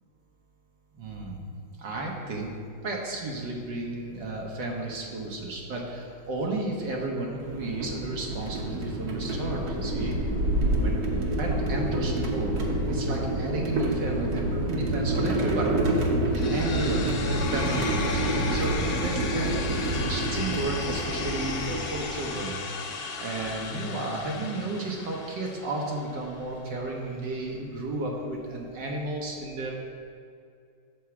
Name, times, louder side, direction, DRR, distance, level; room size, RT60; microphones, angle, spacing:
voice 1, 0.9-1.5 1.8-2.5 2.8-10.2 10.8-11.1 11.4-15.7 16.3-19.6 19.9-22.5 23.2-29.7, right 2 dB, 75° right, -1 dB, 1.9 m, -33 dB
sound 1, 7.4-22.4, right 1 dB, 60° right, 1.5 m, -28 dB
sound 2, 16.4-26.3, left 4 dB, 75° left, 1.5 m, -35 dB
8.3 x 4.6 x 7.2 m, 2.3 s
omnidirectional pair, 2.0 m